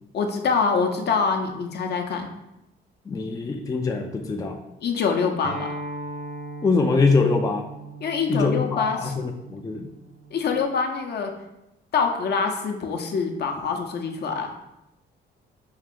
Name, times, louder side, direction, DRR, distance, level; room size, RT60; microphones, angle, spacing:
voice 1, 0.1-2.3 4.8-5.7 8.0-9.1 10.3-11.3 11.9-14.6, left 5 dB, 55° left, 4 dB, 0.7 m, -25 dB
voice 2, 3.1-4.6 6.6-7.7 8.3-9.9, left 4 dB, 20° left, 3 dB, 0.3 m, -23 dB
Acoustic guitar, 5.4-10.6, right 2 dB, 60° right, 1.0 m, -38 dB
4.6 x 2.5 x 3.6 m, 0.88 s
cardioid pair, 90°, 20 cm